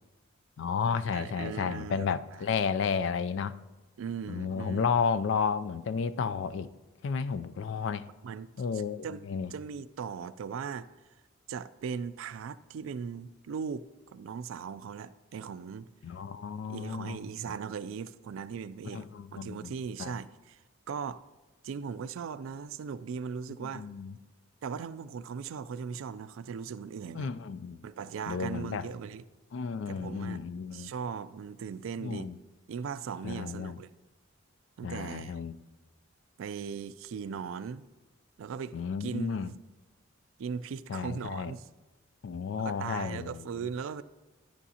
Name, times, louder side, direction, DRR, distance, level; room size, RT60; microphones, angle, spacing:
voice 1, 0.6-3.6 4.3-6.7 7.0-8.1 8.6-9.5 16.0-17.2 17.5-17.6 18.9-19.7 20.0-20.2 23.6-24.1 27.1-27.9 28.3-28.9 29.5-30.9 32.0-32.3 33.2-33.8 34.8-35.6 38.7-39.5 40.9-41.5 42.2-43.5, left 6 dB, 60° left, 0.3 m, -32 dB
voice 2, 1.1-2.2 4.0-4.9 8.2-8.5 9.0-9.2 9.5-10.9 11.5-13.9 14.1-15.9 16.7-20.6 20.9-21.2 21.6-23.9 24.6-27.3 27.8-29.2 29.9-30.4 30.7-32.3 32.7-33.9 34.8-35.4 36.4-37.8 38.4-38.7 39.0-39.6 40.4-41.7 42.6-44.0, right 6 dB, 75° right, 0.3 m, -38 dB
11.0 x 8.9 x 2.8 m
head